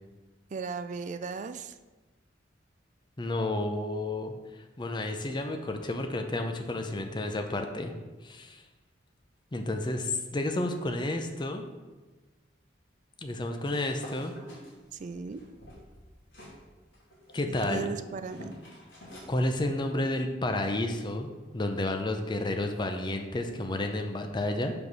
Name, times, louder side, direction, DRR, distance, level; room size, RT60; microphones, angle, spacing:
voice 1, 0.5-1.7 15.0-15.4 17.7-18.6, right 4 dB, 40° right, 10 dB, 0.3 m, -36 dB
voice 2, 3.2-4.3 4.8-7.9 8.2-8.6 9.5-11.6 13.2-14.3 17.3-17.9 19.3-21.3 21.5-24.7, left 1 dB, 25° left, 5 dB, 0.5 m, -31 dB
sound 1, 13.6-16.6 16.9-19.4, equal, 75° left, 2.2 m, -48 dB
5.0 x 4.7 x 5.4 m, 1.2 s
head